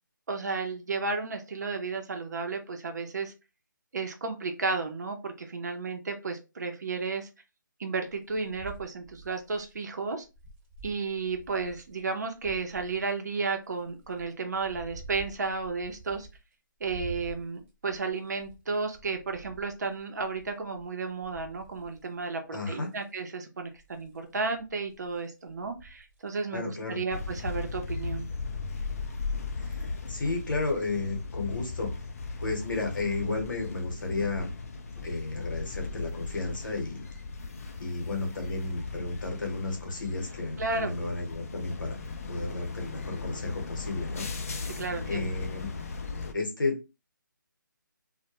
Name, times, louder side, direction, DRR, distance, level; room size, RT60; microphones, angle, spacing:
voice 1, 0.3-3.3 3.9-7.3 7.8-10.2 10.8-16.3 16.8-28.3 40.6-40.9 44.8-45.3, right 4 dB, 55° right, 5 dB, 0.6 m, -33 dB
sound 1, 8.1-12.0 12.3-13.1 13.7-16.5 16.8-22.3 22.7-23.2 23.7-26.4, right 4 dB, 20° right, 1.0 m, -49 dB
voice 2, 22.5-22.9 26.5-27.0 29.6-31.9 32.4-34.5 35.0-37.0 37.8-42.0 42.3-44.3 45.0-45.7 46.3-47.0, left 3 dB, 70° left, 3 dB, 0.9 m, -33 dB
sound 2, 27.1-46.3, left 4 dB, 45° left, 0.4 m, -37 dB
sound 3, 30.9-31.2 31.6-31.9 32.5-32.7 33.0-33.5 34.2-34.5 34.9-35.3 35.9-36.4, left 3 dB, 20° left, 0.8 m, -52 dB
2.2 x 2.2 x 2.9 m, 0.28 s
figure-of-eight pair, 155°, 11 cm